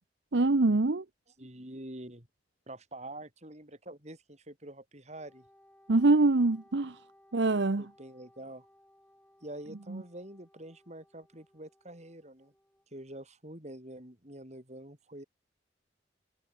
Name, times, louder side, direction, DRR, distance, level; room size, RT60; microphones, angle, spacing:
voice 1, 0.3-1.0 5.9-7.0 7.3-7.8 9.9-10.0, right 2 dB, 70° right, 0.9 m, -24 dB
voice 2, 1.4-2.3 2.7-5.5 7.8-8.7 9.4-12.5 12.9-15.2, right 1 dB, 40° right, 7.0 m, -46 dB
Wind instrument woodwind instrument, 5.1-12.9, left 1 dB, 10° left, 7.7 m, -63 dB
head